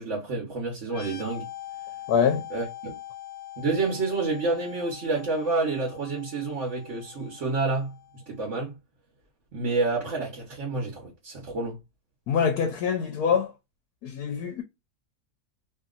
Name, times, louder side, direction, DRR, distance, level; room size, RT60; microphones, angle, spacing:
voice 1, 0.0-1.4 2.5-3.0 3.6-8.7 9.5-11.8, right 3 dB, 50° right, 1.1 m, -29 dB
sound 1, 0.8-8.4, left 13 dB, 55° left, 0.7 m, -43 dB
voice 2, 2.1-2.4 12.3-13.5 14.0-14.6, left 7 dB, 75° left, 1.1 m, -24 dB
2.9 x 2.7 x 2.4 m
omnidirectional pair, 1.8 m